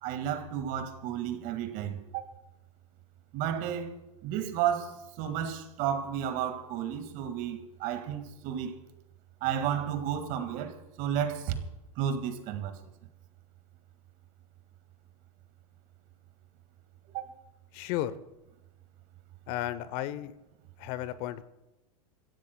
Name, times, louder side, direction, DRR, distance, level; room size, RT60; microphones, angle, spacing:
voice 1, 0.0-2.2 3.3-3.9 4.2-8.7 9.4-11.6 12.0-12.8 17.1-17.2, right 9 dB, 50° right, 2.0 m, -32 dB
voice 2, 17.7-18.2 19.5-20.3 20.8-21.4, left 13 dB, 50° left, 0.8 m, -33 dB
27.0 x 15.5 x 2.3 m
hypercardioid pair, 105°, 19 cm